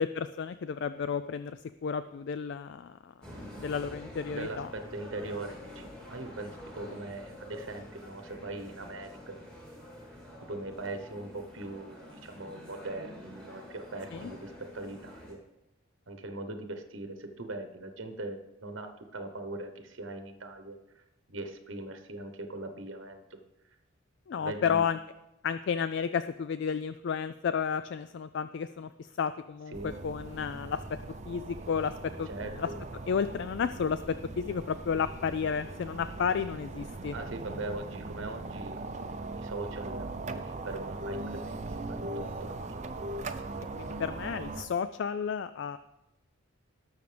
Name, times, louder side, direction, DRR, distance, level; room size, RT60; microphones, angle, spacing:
voice 1, 0.0-3.1 3.6-4.7 14.1-14.3 24.3-25.0 25.4-30.8 31.3-31.9 32.2-32.3 32.6-32.7 33.1-34.0 34.4-37.1 43.8-45.8, left 6 dB, 55° left, 12 dB, 0.3 m, -32 dB
sound 1, 3.2-15.3, equal, 5° left, 2.3 m, -47 dB
voice 2, 4.3-9.4 10.4-15.4 16.1-21.0 21.3-23.4 24.3-24.8 29.7-29.9 32.3-32.8 37.1-42.7, right 2 dB, 65° right, 6 dB, 1.0 m, -41 dB
sound 2, 29.7-44.6, right 2 dB, 35° right, 0.6 m, -40 dB
19.0 x 6.5 x 3.4 m, 0.92 s
head